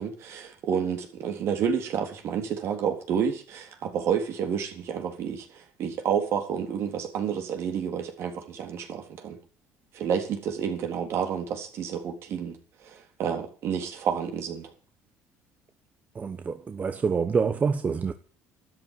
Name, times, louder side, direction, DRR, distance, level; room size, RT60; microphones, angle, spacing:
voice 1, 0.0-9.4 9.9-12.6 12.8-14.7, right 7 dB, 55° right, 3.6 m, -30 dB
voice 2, 16.1-18.1, right 5 dB, 30° right, 1.1 m, -26 dB
12.5 x 9.3 x 9.5 m
cardioid pair, 105°, 5 cm